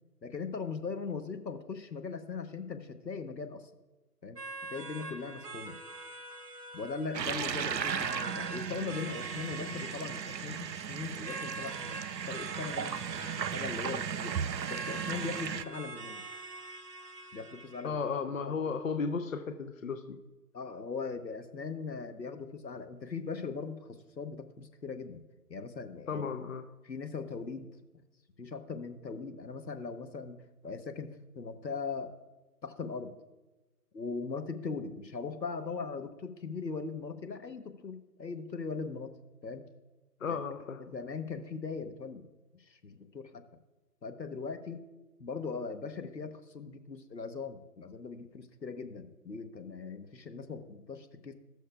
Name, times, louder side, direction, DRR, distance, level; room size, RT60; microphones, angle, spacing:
voice 1, 0.2-3.6 4.2-4.4 4.7-5.7 6.7-12.0 12.3-14.4 14.7-16.2 17.3-18.0 18.3-18.5 20.5-25.2 25.5-26.2 26.8-27.7 28.4-30.4 30.6-32.1 32.6-33.1 33.9-39.1 39.4-39.6 40.3-40.4 40.8-42.3 42.5-43.4 44.0-44.8 45.2-51.3, left 4 dB, 85° left, 8 dB, 1.1 m, -40 dB
sound 1, 4.4-17.9, right 2 dB, 65° right, 1.1 m, -45 dB
sound 2, 7.1-15.6, right 7 dB, 90° right, 0.6 m, -36 dB
voice 2, 17.8-20.2 26.1-26.7 40.2-40.8, left 5 dB, 55° left, 7 dB, 0.7 m, -34 dB
19.5 x 6.5 x 2.3 m, 1.1 s
figure-of-eight pair, 155°, 49 cm